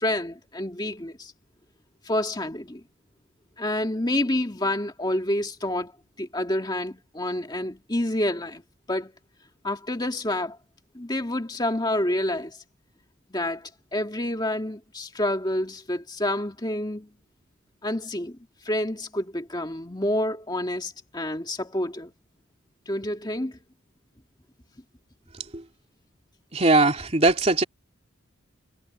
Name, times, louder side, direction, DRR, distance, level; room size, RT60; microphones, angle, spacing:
voice 1, 0.0-1.3 2.0-2.8 3.6-5.9 6.2-8.6 8.9-9.1 9.6-10.6 10.9-12.6 13.3-17.1 17.8-22.1 22.9-23.6, left 1 dB, 20° left, 2.0 m, -28 dB
voice 2, 26.5-27.6, right 2 dB, 30° right, 3.1 m, -21 dB
head